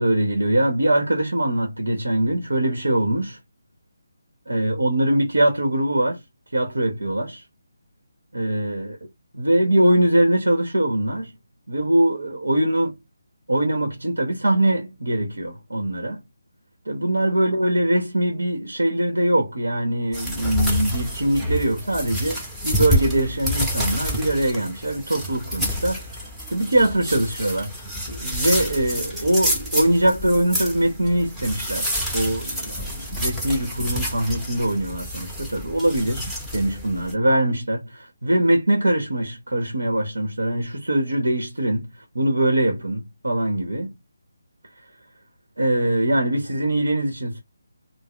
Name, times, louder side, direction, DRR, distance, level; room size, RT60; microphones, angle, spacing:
voice 1, 0.0-3.4 4.5-6.2 6.5-7.4 8.3-9.0 9.3-11.3 11.7-13.0 13.5-16.2 16.9-26.0 26.5-27.7 28.1-36.3 36.5-41.9 42.1-43.9 45.6-47.4, right 1 dB, 85° right, 0.9 m, -22 dB
sound 1, 20.1-37.1, equal, 5° right, 0.7 m, -28 dB
2.3 x 2.0 x 3.5 m
figure-of-eight pair, 155°, 0 cm